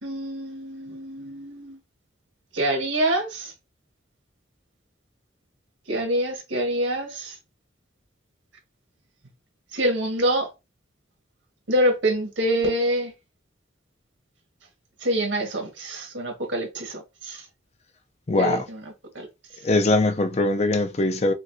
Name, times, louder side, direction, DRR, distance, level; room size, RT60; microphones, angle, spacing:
voice 1, 0.0-1.8 2.5-3.5 5.9-7.4 9.7-10.5 11.7-13.1 15.0-17.4 18.4-19.3, right 1 dB, 85° right, 1.7 m, -26 dB
voice 2, 18.3-18.6 19.6-21.3, left 2 dB, 35° left, 0.5 m, -21 dB
5.7 x 2.5 x 2.7 m
head